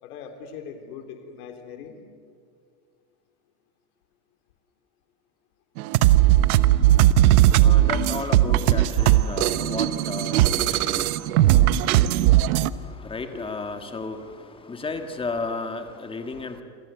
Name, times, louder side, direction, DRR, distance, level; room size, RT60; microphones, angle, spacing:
voice 1, 0.0-2.0, left 6 dB, 80° left, 3.7 m, -40 dB
sound 1, 5.8-12.7, right 13 dB, 75° right, 1.2 m, -18 dB
voice 2, 7.1-11.8 12.7-16.6, left 3 dB, 10° left, 1.8 m, -34 dB
27.5 x 27.0 x 8.0 m
supercardioid pair, 155°, 44 cm